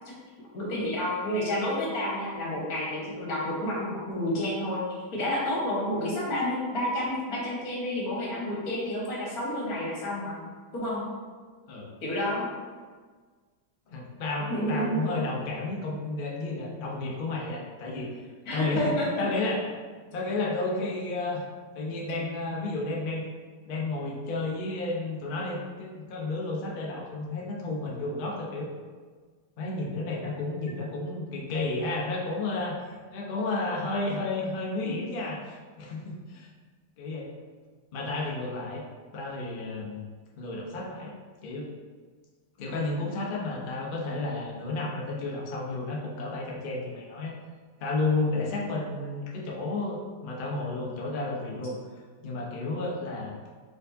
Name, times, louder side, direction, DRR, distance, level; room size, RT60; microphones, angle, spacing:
voice 1, 0.5-4.8 5.1-10.4 10.7-11.0 12.0-12.5 14.5-15.0 18.5-19.2, left 1 dB, 55° left, -5 dB, 1.6 m, -30 dB
voice 2, 13.9-18.2 18.5-19.6 19.9-21.4 21.7-23.2 23.6-28.7 29.6-36.5 37.0-37.3 37.9-38.8 39.1-40.1 40.4-41.1 41.4-41.7 42.6-47.3 47.8-51.8 52.2-53.3, left 2 dB, 75° left, -3 dB, 0.4 m, -32 dB
4.5 x 4.4 x 2.7 m, 1.5 s
omnidirectional pair, 1.9 m